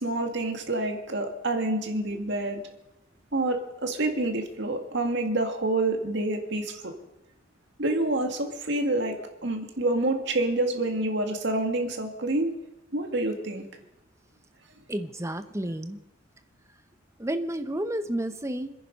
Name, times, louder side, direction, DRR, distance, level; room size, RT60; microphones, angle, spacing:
voice 1, 0.0-2.6 3.3-6.9 7.8-9.2 9.4-12.5 12.9-13.7, right 2 dB, 60° right, 4 dB, 2.1 m, -27 dB
voice 2, 14.9-16.0 17.2-18.7, right 1 dB, 15° right, 9 dB, 0.8 m, -31 dB
26.5 x 10.0 x 5.3 m, 0.92 s
head